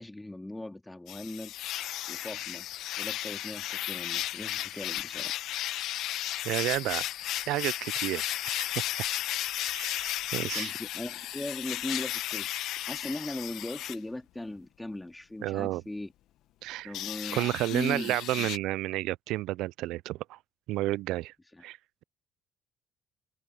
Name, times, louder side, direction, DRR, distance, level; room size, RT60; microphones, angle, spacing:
voice 1, 0.0-1.5 2.1-2.7 3.0-5.4 10.4-16.1 16.8-18.5 21.5-21.6, left 1 dB, 10° left, 2.3 m, -39 dB
sound 1, 1.1-14.0 16.9-18.6, left 13 dB, 75° left, 1.1 m, -34 dB
voice 2, 6.4-7.0 7.5-8.7 9.7-10.7 15.4-15.8 16.6-16.9 17.3-20.4 20.7-21.3 21.6-21.8, right 17 dB, 80° right, 0.4 m, -31 dB
open air
supercardioid pair, 65°, 0 cm